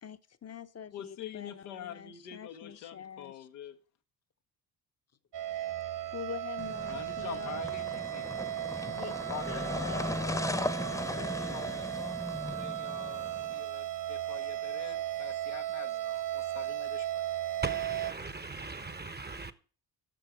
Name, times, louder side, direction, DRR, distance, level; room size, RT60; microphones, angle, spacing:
voice 1, 0.0-3.5 6.1-7.6 8.9-9.2 9.5-10.1 11.1-11.7, left 7 dB, 30° left, 0.9 m, -45 dB
voice 2, 0.9-3.8 6.9-8.4 9.3-10.6 11.5-17.3, left 10 dB, 80° left, 1.2 m, -46 dB
sound 1, 5.3-18.1, right 12 dB, 55° right, 2.0 m, -36 dB
sound 2, 6.6-13.6, left 1 dB, 5° left, 1.0 m, -37 dB
voice 3, 17.6-19.5, right 3 dB, 20° right, 1.0 m, -39 dB
11.0 x 6.6 x 7.0 m
hypercardioid pair, 45°, 49 cm